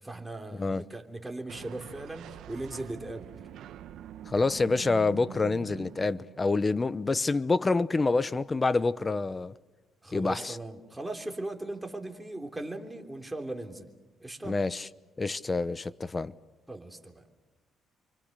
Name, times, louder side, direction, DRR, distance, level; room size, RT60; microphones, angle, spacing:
voice 1, 0.0-3.3 10.0-13.9 14.2-14.6 16.7-17.2, right 2 dB, 10° right, 3.4 m, -38 dB
sound 1, 1.5-6.6, right 10 dB, 80° right, 1.0 m, -45 dB
voice 2, 4.3-9.5 10.1-10.6 14.5-14.9 15.2-16.3, left 3 dB, 25° left, 0.9 m, -27 dB
29.5 x 24.5 x 6.7 m
cardioid pair, 90°, 0 cm